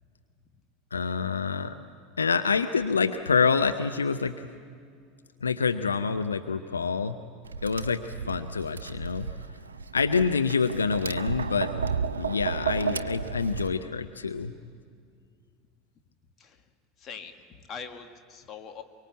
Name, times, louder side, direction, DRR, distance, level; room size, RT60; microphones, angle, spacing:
voice 1, 0.9-1.7 2.2-4.3 5.4-7.2 7.6-9.3 9.9-11.7 12.2-14.5, left 5 dB, 80° left, 9 dB, 0.7 m, -27 dB
Tap, 7.4-13.7, right 5 dB, 75° right, 0.6 m, -33 dB
voice 2, 17.0-18.8, left 6 dB, 30° left, 5 dB, 2.0 m, -42 dB
24.0 x 23.5 x 8.5 m, 2.2 s
figure-of-eight pair, 80°, 0 cm